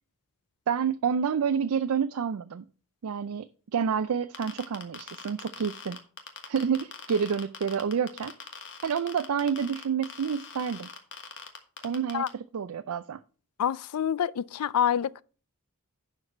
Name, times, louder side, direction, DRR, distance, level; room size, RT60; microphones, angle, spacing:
voice 1, 0.7-2.6 3.0-6.0 6.5-8.3 8.8-10.9 11.8-13.2, right 7 dB, 75° right, 0.4 m, -29 dB
sound 1, 4.3-12.3, left 6 dB, 55° left, 1.4 m, -42 dB
voice 2, 13.6-15.2, left 9 dB, 85° left, 0.4 m, -27 dB
10.5 x 4.7 x 5.4 m
head